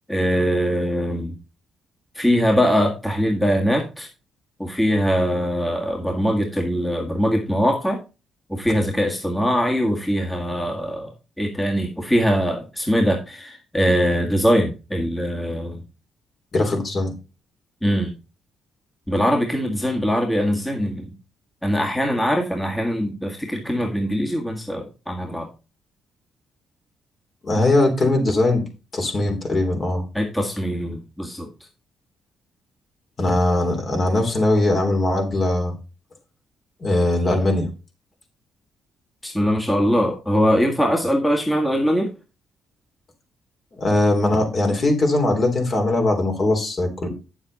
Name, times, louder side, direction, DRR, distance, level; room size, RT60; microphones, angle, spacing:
voice 1, 0.1-1.3 2.1-4.1 4.6-8.0 8.5-11.1 11.4-15.8 17.8-18.1 19.1-21.1 21.6-25.5 30.1-31.5 39.2-42.1, equal, 10° left, 1 dB, 1.8 m, -22 dB
voice 2, 16.5-17.1 27.4-28.6 28.9-30.0 33.2-35.7 36.8-37.7 43.7-47.1, left 2 dB, 45° left, 3 dB, 3.3 m, -20 dB
8.6 x 7.2 x 4.1 m, 0.31 s
cardioid pair, 90°, 0 cm